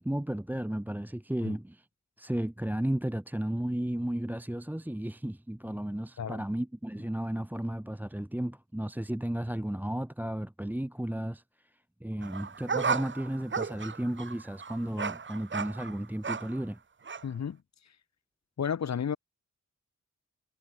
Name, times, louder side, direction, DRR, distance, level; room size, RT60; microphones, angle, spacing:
voice 1, 0.0-1.9 2.2-11.4 11.7-16.8, right 1 dB, 5° right, 1.3 m, -34 dB
sound 1, 12.2-16.6 17.0-17.2, right 5 dB, 40° right, 1.0 m, -34 dB
voice 2, 17.2-17.6 18.6-19.2, left 7 dB, 60° left, 1.0 m, -32 dB
wide cardioid pair, 110°, 31 cm